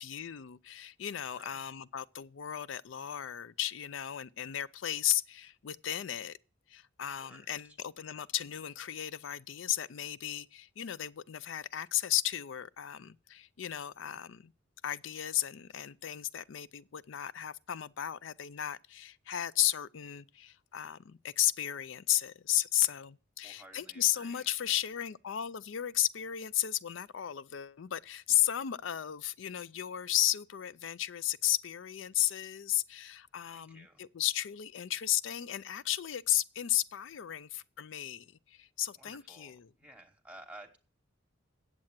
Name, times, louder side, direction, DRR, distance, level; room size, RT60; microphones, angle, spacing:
voice 1, 0.0-6.4 6.7-14.5 14.8-39.7, left 12 dB, 70° left, 0.4 m, -34 dB
voice 2, 1.3-1.7 7.2-7.8 23.4-24.5 33.5-34.0 39.0-40.8, right 1 dB, 5° right, 1.0 m, -54 dB
9.1 x 7.6 x 7.3 m
head